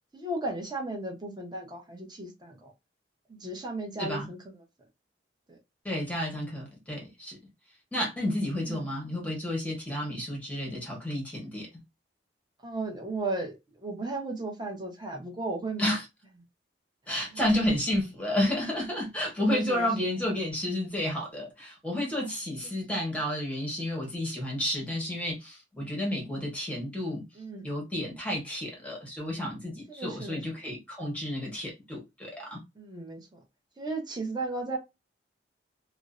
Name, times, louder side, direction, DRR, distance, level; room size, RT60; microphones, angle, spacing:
voice 1, 0.1-2.7 3.3-4.6 5.5-5.6 8.6-8.8 12.6-13.6 13.8-15.9 17.3-17.4 19.4-19.9 22.2-22.4 22.6-22.7 27.3-27.7 29.9-30.4 32.8-33.4 33.8-34.8, right 2 dB, 25° right, 0.7 m, -35 dB
voice 2, 5.8-7.4 7.9-11.7 15.8-16.0 17.1-27.2 27.6-32.6, left 1 dB, 10° left, 0.9 m, -31 dB
2.5 x 2.1 x 2.4 m
head